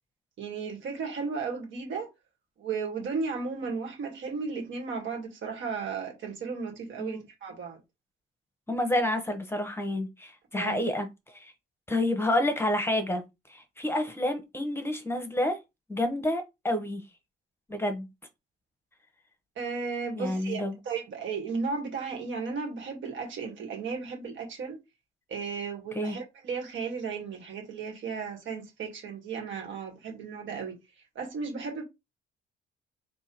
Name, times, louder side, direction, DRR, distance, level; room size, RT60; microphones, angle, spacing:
voice 1, 0.4-2.1 2.6-7.8 10.5-10.8 19.6-24.8 25.3-30.8 31.2-31.8, right 5 dB, 75° right, 1.7 m, -35 dB
voice 2, 8.7-11.1 11.3-11.5 11.9-13.2 13.5-15.6 15.9-17.0 17.7-18.1 20.1-20.8 25.9-26.2, left 1 dB, 10° left, 1.0 m, -29 dB
3.7 x 2.8 x 4.4 m
cardioid pair, 90°, 20 cm